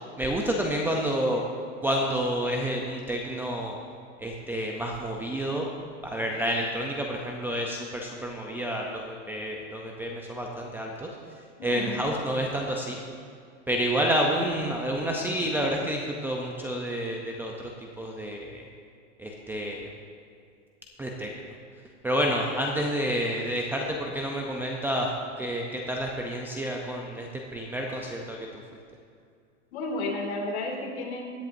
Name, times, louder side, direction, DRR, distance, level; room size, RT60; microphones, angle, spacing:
voice 1, 0.2-1.4 1.8-3.8 4.2-5.7 6.0-11.1 11.6-13.0 13.7-18.6 19.2-19.9 21.0-21.3 22.0-28.4, equal, 5° right, 0 dB, 0.5 m, -29 dB
voice 2, 11.6-12.0 29.7-31.3, left 2 dB, 60° left, 0 dB, 2.6 m, -32 dB
16.5 x 10.5 x 2.6 m, 2.3 s
supercardioid pair, 145°, 37 cm